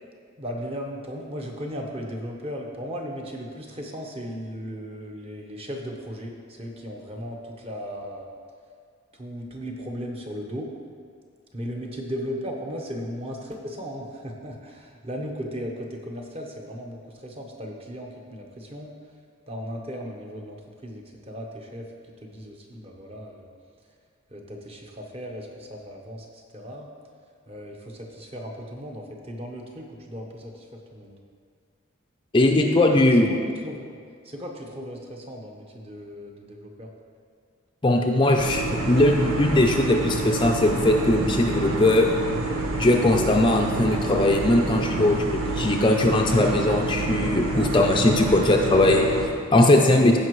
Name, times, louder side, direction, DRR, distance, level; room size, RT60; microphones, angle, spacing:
voice 1, 0.4-8.3 9.1-10.7 11.5-19.0 19.5-21.9 22.2-23.5 24.3-26.9 27.5-31.2 33.0-33.4 33.6-36.9, equal, 30° right, 0 dB, 0.9 m, -36 dB
voice 2, 32.3-33.3 37.8-42.1 42.8-50.2, left 1 dB, 25° left, 2 dB, 0.5 m, -20 dB
sound 1, 38.4-49.3, right 3 dB, 90° right, 1.0 m, -28 dB
15.5 x 5.2 x 3.1 m, 2.1 s
head